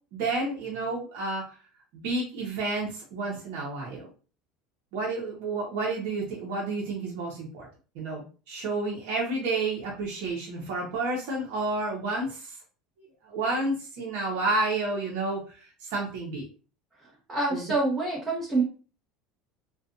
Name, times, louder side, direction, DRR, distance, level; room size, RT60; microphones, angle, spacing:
voice 1, 0.1-1.5 1.9-4.1 4.9-7.7 7.9-12.6 13.2-16.4 17.5-17.7, right 2 dB, 75° right, -4 dB, 0.9 m, -30 dB
voice 2, 17.3-18.6, right 2 dB, 25° right, -3 dB, 0.8 m, -26 dB
2.5 x 2.3 x 2.5 m, 0.37 s
supercardioid pair, 115°, 0 cm